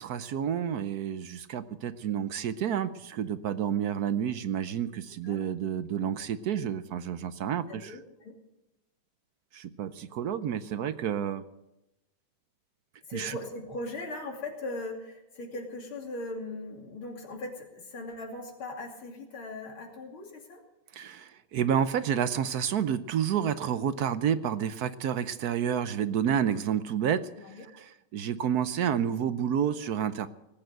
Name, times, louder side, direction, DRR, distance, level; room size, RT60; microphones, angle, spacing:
voice 1, 0.0-8.0 9.5-11.4 13.1-13.4 20.9-30.3, right 8 dB, 65° right, 13 dB, 1.0 m, -30 dB
voice 2, 7.7-8.4 13.1-20.6 27.4-27.7, left 2 dB, 90° left, 1 dB, 3.6 m, -39 dB
19.0 x 8.9 x 7.8 m, 0.96 s
omnidirectional pair, 2.3 m